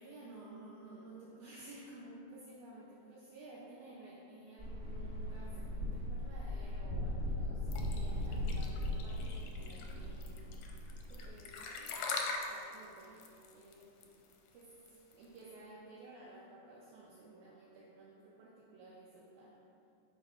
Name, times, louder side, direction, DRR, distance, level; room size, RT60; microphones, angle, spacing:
voice 1, 0.0-10.6 11.1-12.1 12.5-14.2 14.5-19.6, right 2 dB, 75° right, -6 dB, 2.1 m, -54 dB
sound 1, 4.6-11.3, left 1 dB, 50° right, 2.7 m, -38 dB
sound 2, 7.7-15.4, left 4 dB, 75° left, 1.7 m, -42 dB
7.0 x 4.6 x 5.5 m, 2.7 s
omnidirectional pair, 3.8 m